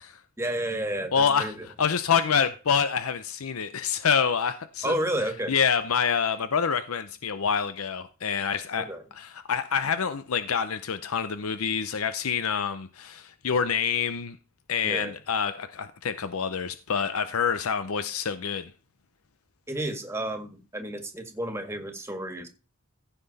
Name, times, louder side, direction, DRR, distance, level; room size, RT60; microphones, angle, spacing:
voice 1, 0.4-1.7 4.8-5.5 8.8-9.0 14.8-15.1 19.7-22.5, right 1 dB, 10° right, 1.8 m, -31 dB
voice 2, 1.1-1.5 1.8-4.9 5.5-8.9 9.1-14.4 14.7-18.7, left 6 dB, 90° left, 0.7 m, -27 dB
15.5 x 5.9 x 4.1 m
head